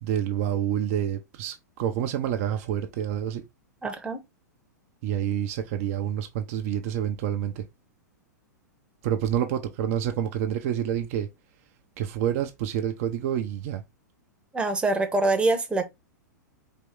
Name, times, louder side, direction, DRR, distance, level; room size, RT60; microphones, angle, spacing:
voice 1, 0.0-3.4 5.0-7.7 9.0-11.3 12.0-13.8, right 10 dB, 45° right, 0.7 m, -28 dB
voice 2, 3.8-4.2 14.5-15.9, right 2 dB, 10° right, 1.0 m, -24 dB
4.4 x 3.0 x 3.7 m
figure-of-eight pair, 100°, 10 cm